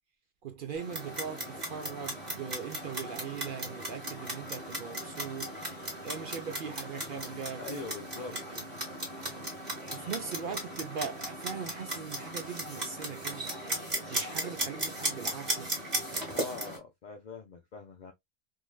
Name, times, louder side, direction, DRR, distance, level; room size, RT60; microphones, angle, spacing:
voice 1, 0.4-7.8 8.3-8.6 9.9-13.6 14.1-15.7, right 6 dB, 60° right, 0.6 m, -40 dB
Clock, 0.7-16.8, right 1 dB, 35° right, 1.3 m, -37 dB
voice 2, 7.6-8.6 10.4-10.6 16.3-18.1, left 4 dB, 75° left, 0.4 m, -43 dB
3.2 x 2.7 x 2.2 m
omnidirectional pair, 1.3 m